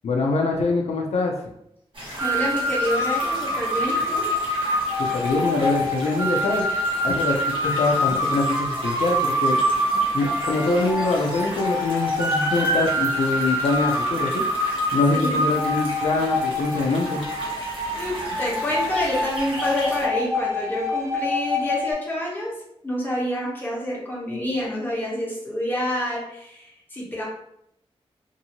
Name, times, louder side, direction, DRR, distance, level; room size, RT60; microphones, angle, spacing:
voice 1, 0.0-1.4 5.0-6.6 7.0-9.6 10.1-14.5 14.9-17.3, left 3 dB, 85° left, 1 dB, 0.5 m, -24 dB
sound 1, 1.9-20.1, equal, 50° right, 1.0 m, -36 dB
voice 2, 2.2-4.3 15.1-15.4 18.0-22.6 22.8-27.2, left 1 dB, 20° left, -5 dB, 1.0 m, -28 dB
sound 2, 2.2-21.9, left 1 dB, 25° right, 0.4 m, -25 dB
2.7 x 2.6 x 2.8 m, 0.76 s
wide cardioid pair, 110°, 11 cm